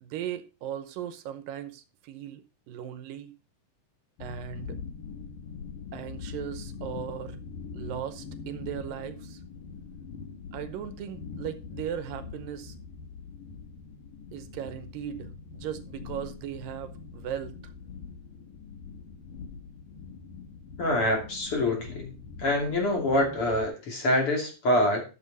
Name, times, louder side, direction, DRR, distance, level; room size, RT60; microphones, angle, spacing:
voice 1, 0.0-3.3 4.2-4.8 5.9-7.4 7.7-9.4 10.5-12.8 14.3-17.7, right 10 dB, 80° right, 2.6 m, -38 dB
sound 1, 4.2-23.7, left 5 dB, 75° left, 3.0 m, -43 dB
voice 2, 20.8-22.1 22.4-25.0, left 1 dB, 40° left, 3.3 m, -25 dB
11.5 x 6.5 x 4.1 m
omnidirectional pair, 3.9 m